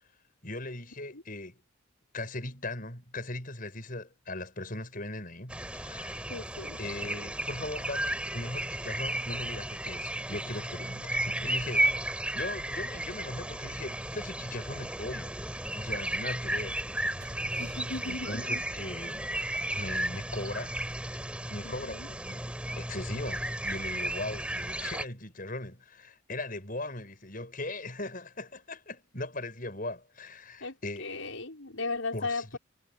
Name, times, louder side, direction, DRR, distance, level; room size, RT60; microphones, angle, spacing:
voice 1, 0.4-1.6 2.1-6.3 6.8-15.4 15.7-16.8 18.0-19.3 19.7-20.7 21.5-22.4 22.8-31.2 32.1-32.6, left 2 dB, 40° left, 6.9 m, -39 dB
sound 1, 5.5-25.1, right 1 dB, 5° right, 4.8 m, -34 dB
voice 2, 6.3-6.8 17.6-18.6 21.6-22.1 30.6-32.6, left 3 dB, 80° left, 6.1 m, -37 dB
sound 2, 16.9-19.8 20.0-20.1, right 1 dB, 45° right, 7.1 m, -50 dB
head